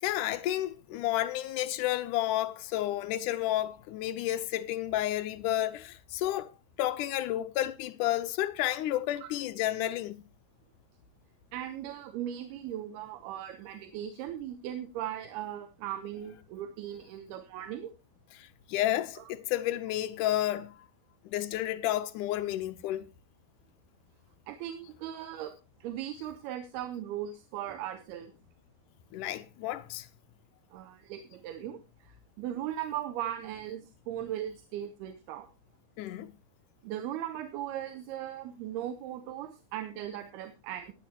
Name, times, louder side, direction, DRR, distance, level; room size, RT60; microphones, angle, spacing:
voice 1, 0.0-6.5 6.8-10.2 18.4-20.7 21.3-23.1 29.1-30.1 36.0-36.4, left 14 dB, 75° left, 1.9 m, -31 dB
voice 2, 11.5-17.9 19.2-19.3 24.5-25.5 25.8-28.3 30.7-35.5 36.8-40.9, right 11 dB, 85° right, 3.0 m, -38 dB
18.0 x 10.0 x 2.9 m
omnidirectional pair, 4.6 m